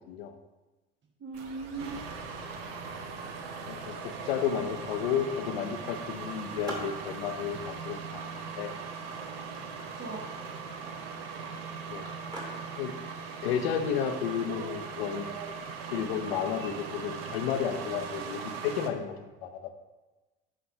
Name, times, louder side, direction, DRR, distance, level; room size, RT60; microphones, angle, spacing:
voice 1, 1.2-2.0 9.9-10.3, right 3 dB, 40° right, 1 dB, 1.3 m, -38 dB
Skateboard, 1.3-17.2, equal, 15° right, 2.0 m, -50 dB
sound 1, 1.3-8.1, right 4 dB, 60° right, 0.9 m, -49 dB
sound 2, 1.8-18.9, right 5 dB, 85° right, 0.6 m, -40 dB
voice 2, 3.7-8.3 8.6-8.7 11.9-12.1 12.8-12.9 13.4-15.2 15.9-19.7, left 8 dB, 80° left, 8 dB, 0.6 m, -32 dB
8.0 x 5.4 x 2.7 m, 1.2 s
hypercardioid pair, 60°, 29 cm